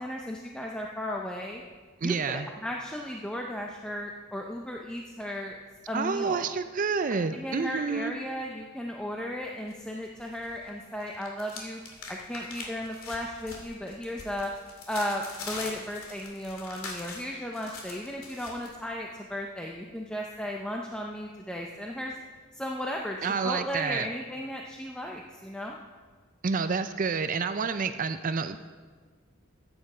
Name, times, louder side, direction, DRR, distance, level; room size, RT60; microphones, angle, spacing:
voice 1, 0.0-1.6 2.0-5.6 5.9-6.5 7.3-11.8 12.1-14.5 14.9-22.2 22.5-25.8, left 1 dB, 5° left, 0 dB, 0.6 m, -35 dB
voice 2, 2.0-2.5 5.9-8.1 23.2-24.1 26.4-28.6, right 5 dB, 40° right, 11 dB, 0.4 m, -29 dB
sound 1, 9.7-10.6 10.8-18.7, left 3 dB, 85° left, 2.2 m, -43 dB
13.5 x 8.9 x 4.9 m, 1.5 s
head